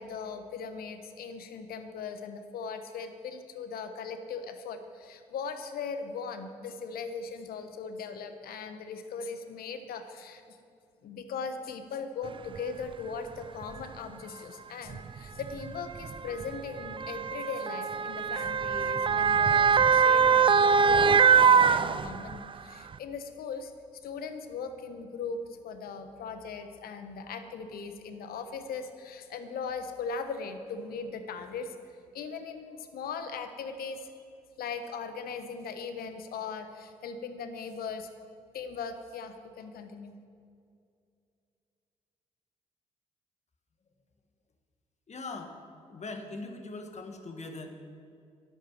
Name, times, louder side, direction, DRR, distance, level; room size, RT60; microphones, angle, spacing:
voice 1, 0.0-10.6 11.0-23.7 24.0-31.7 32.1-34.1 34.6-38.1 38.5-40.1, left 5 dB, 70° left, 8 dB, 1.2 m, -39 dB
Motor vehicle (road) / Siren, 12.6-12.7 13.6-13.8 14.9-22.5 22.9-23.0, right 6 dB, 30° right, 0.4 m, -23 dB
voice 2, 45.1-45.6 45.9-47.7, left 3 dB, 45° left, 5 dB, 1.9 m, -40 dB
11.0 x 9.1 x 7.5 m, 2.4 s
hypercardioid pair, 45°, 16 cm